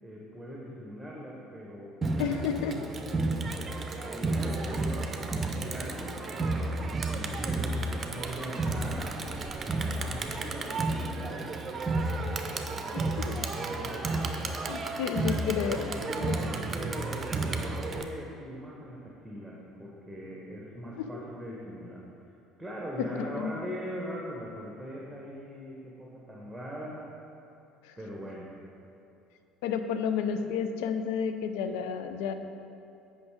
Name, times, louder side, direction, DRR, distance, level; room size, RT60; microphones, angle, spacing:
voice 1, 0.0-3.8 4.1-6.2 7.0-9.2 9.6-11.4 12.4-14.6 15.1-22.0 22.6-27.0 28.0-28.5, equal, 5° right, -4 dB, 1.3 m, -41 dB
Crowd, 2.0-18.0, right 2 dB, 30° right, 0.7 m, -32 dB
voice 2, 2.2-2.9 12.9-13.4 14.7-15.9 16.2-16.4 21.0-21.2 23.0-23.5 27.8-27.9 29.6-32.3, left 7 dB, 65° left, 8 dB, 0.4 m, -31 dB
8.4 x 5.3 x 4.9 m, 2.7 s
figure-of-eight pair, 60°, 0 cm